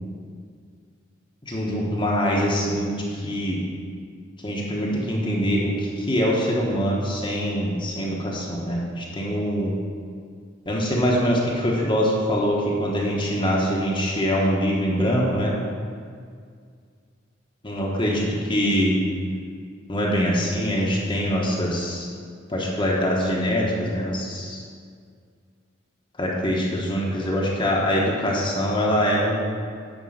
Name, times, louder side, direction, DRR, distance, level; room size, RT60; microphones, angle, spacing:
voice 1, 1.5-3.6 4.4-9.7 10.6-15.6 17.6-19.0 19.9-22.1 22.5-24.6 26.2-29.3, equal, 25° left, -3 dB, 1.3 m, -23 dB
10.0 x 4.7 x 6.5 m, 2.1 s
head